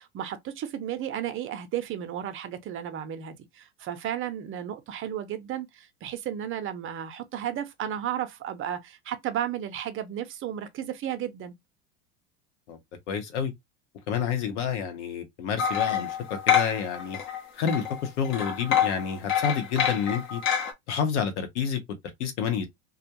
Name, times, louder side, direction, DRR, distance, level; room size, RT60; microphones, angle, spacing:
voice 1, 0.0-11.5, right 10 dB, 35° right, 0.6 m, -33 dB
voice 2, 13.1-13.5 14.1-17.2 17.5-20.4 20.9-22.7, left 7 dB, 75° left, 0.9 m, -29 dB
sound 1, 15.6-17.4 17.7-20.7, left 8 dB, 35° left, 0.8 m, -27 dB
2.4 x 2.2 x 2.8 m
hypercardioid pair, 90°, 34 cm